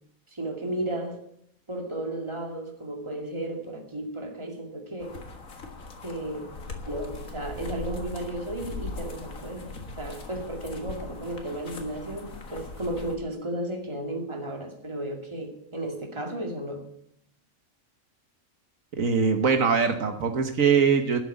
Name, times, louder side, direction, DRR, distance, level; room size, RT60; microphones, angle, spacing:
voice 1, 0.3-1.2 1.7-5.2 6.0-16.8, right 1 dB, 20° right, 2 dB, 2.3 m, -34 dB
sound 1, 5.0-13.2, left 3 dB, 75° left, 2.1 m, -40 dB
voice 2, 19.0-21.2, right 6 dB, 75° right, 6 dB, 1.6 m, -22 dB
12.0 x 7.6 x 8.9 m, 0.71 s
omnidirectional pair, 1.4 m